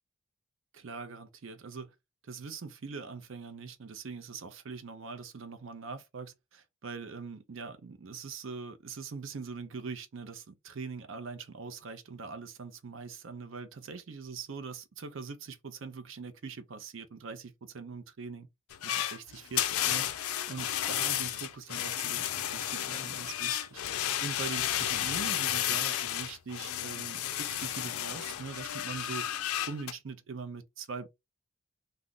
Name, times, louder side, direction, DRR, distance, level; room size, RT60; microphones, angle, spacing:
voice 1, 0.7-1.9 2.2-18.5 18.8-31.1, right 5 dB, 60° right, 0.5 m, -42 dB
sound 1, 18.7-29.9, left 11 dB, 75° left, 0.4 m, -32 dB
2.3 x 2.0 x 3.6 m
head